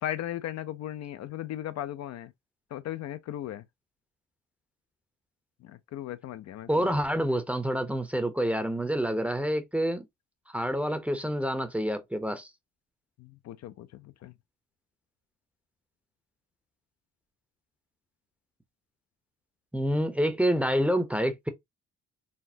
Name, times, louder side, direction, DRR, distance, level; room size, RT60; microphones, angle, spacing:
voice 1, 0.0-2.3 2.7-3.6 5.6-6.9 13.2-14.3, left 12 dB, 60° left, 0.4 m, -37 dB
voice 2, 6.7-10.1 10.5-12.5 19.7-21.5, equal, 5° right, 0.6 m, -27 dB
4.2 x 2.0 x 2.5 m
cardioid pair, 90°, 30 cm